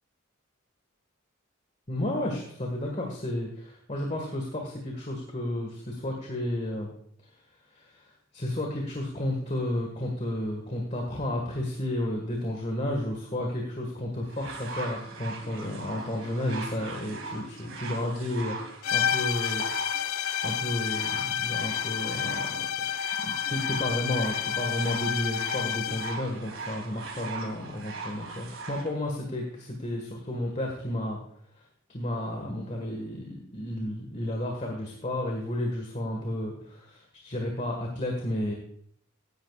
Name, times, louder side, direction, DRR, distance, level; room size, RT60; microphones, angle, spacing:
voice 1, 1.9-6.9 7.2-7.3 7.7-19.6 20.4-22.7 23.2-31.2 31.5-31.6 31.9-38.5, left 1 dB, 35° left, 1 dB, 1.6 m, -32 dB
sound 1, 14.3-28.9 29.8-29.9, right 3 dB, 60° right, 2.3 m, -40 dB
sound 2, 18.8-26.3, left 9 dB, 90° left, 0.4 m, -30 dB
16.5 x 11.0 x 2.4 m, 0.62 s
head